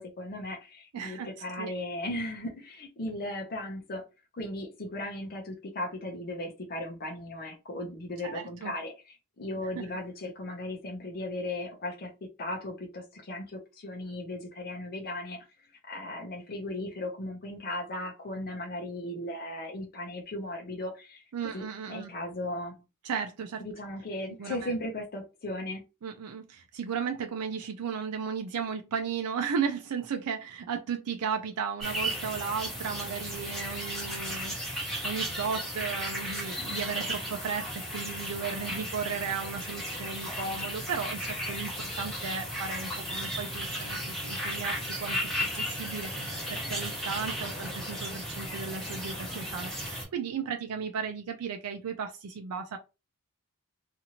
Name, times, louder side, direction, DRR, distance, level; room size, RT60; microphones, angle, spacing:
voice 1, 0.0-4.0 4.4-15.5 15.8-21.2 21.5-22.8 23.6-25.8, left 1 dB, 45° left, 0.6 m, -37 dB
voice 2, 0.9-1.3 1.6-1.7 8.2-8.7 9.8-9.9 21.3-22.1 23.0-23.6 24.4-24.7 26.0-52.8, right 6 dB, 80° right, 0.4 m, -35 dB
sound 1, 31.8-50.0, equal, ahead, 1.2 m, -35 dB
2.8 x 2.5 x 2.8 m
head